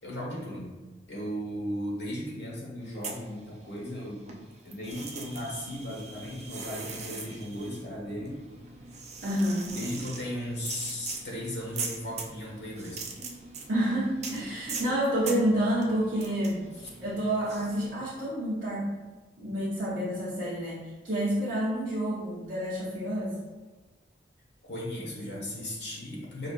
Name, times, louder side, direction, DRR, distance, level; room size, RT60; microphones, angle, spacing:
voice 1, 0.0-0.7 1.1-4.4 4.6-8.4 9.7-13.0 24.6-26.5, equal, 80° left, -4 dB, 1.2 m, -36 dB
sound 1, 2.9-4.0 4.3-17.9, right 4 dB, 40° right, 0.4 m, -42 dB
voice 2, 9.2-9.8 13.7-18.9 19.4-23.4, right 1 dB, 55° right, -10 dB, 0.9 m, -29 dB
5.3 x 2.5 x 2.5 m, 1.2 s
head